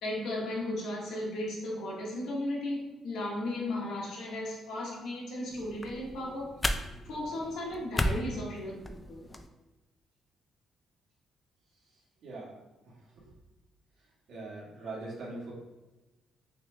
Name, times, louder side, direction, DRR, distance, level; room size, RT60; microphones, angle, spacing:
voice 1, 0.0-6.6 7.0-9.2, left 1 dB, 85° left, -4 dB, 1.2 m, -35 dB
sound 1, 5.5-9.5, left 1 dB, 20° left, 0.3 m, -35 dB
voice 2, 12.2-12.5 14.3-15.5, right 2 dB, 80° right, -6 dB, 1.5 m, -41 dB
5.8 x 2.1 x 2.6 m, 1.1 s
cardioid pair, 90°, 0 cm